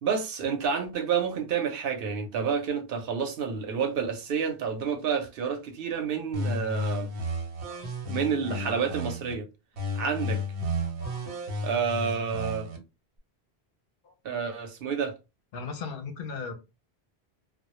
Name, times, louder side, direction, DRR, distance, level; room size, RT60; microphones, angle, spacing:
voice 1, 0.0-7.1 8.1-9.5 10.0-10.4 11.6-12.7 14.2-15.1, right 6 dB, 65° right, 0.7 m, -29 dB
sound 1, 6.3-9.3 9.8-12.8, left 1 dB, 90° right, 1.0 m, -33 dB
voice 2, 10.7-11.4 14.0-14.1 15.5-16.5, left 5 dB, 65° left, 0.7 m, -38 dB
2.1 x 2.0 x 2.9 m
omnidirectional pair, 1.1 m